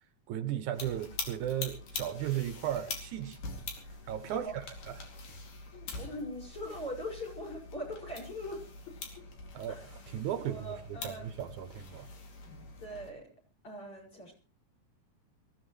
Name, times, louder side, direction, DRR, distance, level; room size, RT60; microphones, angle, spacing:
voice 1, 0.3-3.4 4.1-5.0 9.5-9.8 10.1-12.1, right 11 dB, 75° right, 2.3 m, -35 dB
sound 1, 0.7-13.1, left 3 dB, 90° left, 4.4 m, -44 dB
voice 2, 5.7-8.7 9.7-9.8 10.3-11.3 12.8-13.3 13.6-14.3, equal, 40° left, 7.0 m, -41 dB
22.0 x 16.0 x 3.2 m
omnidirectional pair, 3.6 m